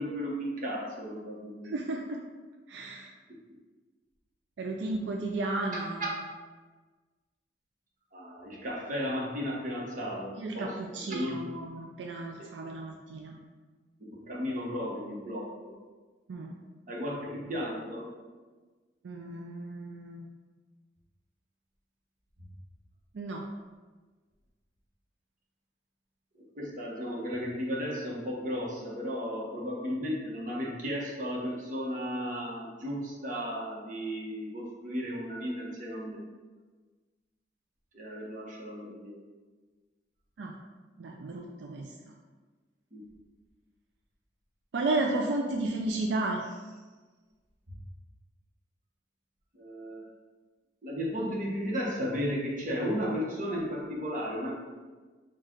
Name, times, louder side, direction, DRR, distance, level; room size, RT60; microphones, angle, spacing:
voice 1, 0.0-1.7 5.7-5.8 8.1-10.8 11.1-11.4 14.1-15.7 16.9-18.1 26.5-36.2 37.9-39.2 42.9-43.0 49.5-50.0 50.8-54.5, equal, 50° right, -3 dB, 1.0 m, -34 dB
voice 2, 1.6-2.2 2.7-3.1 4.6-6.0 10.4-13.4 16.3-16.5 19.0-20.3 23.1-23.4 40.4-40.5 41.0-41.9 44.7-46.6, right 2 dB, 85° right, 1 dB, 0.4 m, -33 dB
4.6 x 2.4 x 4.4 m, 1.3 s
head